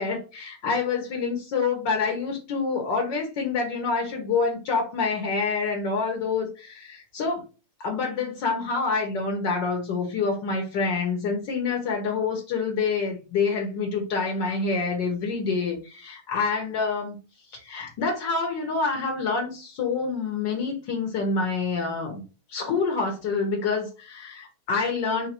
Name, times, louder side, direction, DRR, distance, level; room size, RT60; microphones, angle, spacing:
voice 1, 0.0-7.4 7.8-17.2 17.5-22.2 22.5-25.3, left 4 dB, 75° left, 1.7 m, -27 dB
3.8 x 2.6 x 4.2 m
omnidirectional pair, 2.0 m